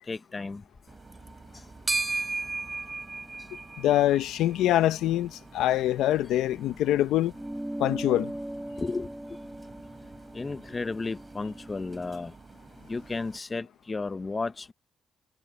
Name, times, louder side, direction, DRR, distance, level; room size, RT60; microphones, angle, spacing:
voice 1, 0.1-0.6 8.8-9.1 10.3-12.3 12.9-14.7, left 3 dB, 25° left, 0.8 m, -33 dB
sound 1, 0.9-13.4, right 3 dB, 25° right, 3.6 m, -39 dB
voice 2, 3.8-7.3 7.8-8.3, left 13 dB, 85° left, 0.8 m, -24 dB
sound 2, 7.3-12.1, right 1 dB, 5° right, 1.9 m, -39 dB
cardioid pair, 90°, 0 cm